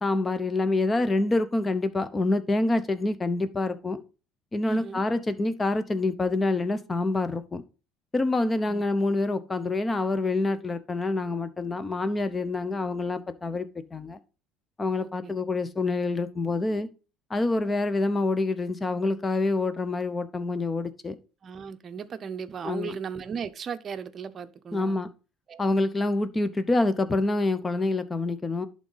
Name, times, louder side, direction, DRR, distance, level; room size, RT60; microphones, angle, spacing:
voice 1, 0.0-4.0 4.5-7.6 8.1-14.2 14.8-16.9 17.3-21.2 22.6-22.9 24.7-25.1 25.6-28.7, left 2 dB, 20° left, 0.8 m, -26 dB
voice 2, 4.7-5.0 8.7-8.8 15.0-15.3 21.4-25.0 25.5-25.7, right 7 dB, 40° right, 0.7 m, -37 dB
11.0 x 3.7 x 4.0 m
supercardioid pair, 105°, 0 cm